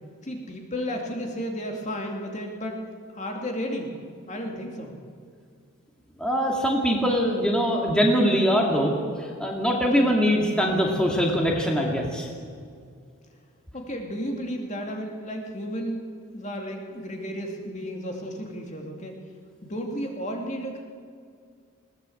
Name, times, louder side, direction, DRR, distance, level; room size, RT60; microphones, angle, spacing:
voice 1, 0.2-2.8 3.1-4.0 4.3-5.0 9.8-10.1 13.7-16.0 16.3-19.2 19.6-20.8, equal, 35° left, 1 dB, 2.4 m, -33 dB
voice 2, 6.2-9.0 9.4-12.3, equal, 5° left, -1 dB, 2.3 m, -22 dB
20.5 x 18.0 x 7.9 m, 2.2 s
head